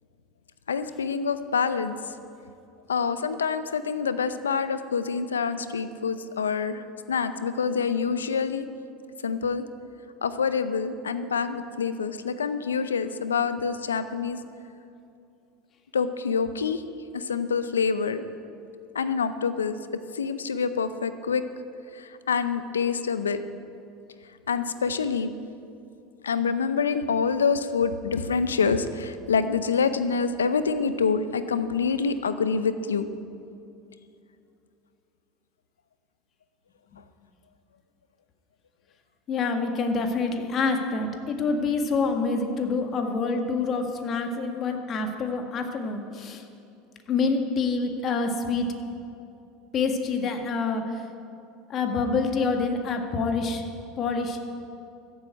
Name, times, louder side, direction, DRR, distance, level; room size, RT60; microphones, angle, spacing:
voice 1, 0.7-2.0 2.9-6.8 7.1-8.7 9.2-9.6 10.2-14.4 15.9-16.8 17.1-18.2 18.9-19.7 20.1-21.4 21.9-23.4 24.5-25.3 26.2-33.1, left 5 dB, 90° left, 12 dB, 0.6 m, -26 dB
voice 2, 39.3-46.4 47.1-48.7 49.7-51.0 51.7-53.6 54.0-54.4, left 4 dB, 40° left, 4 dB, 1.8 m, -27 dB
14.5 x 8.0 x 9.1 m, 2.6 s
hypercardioid pair, 80°, 0 cm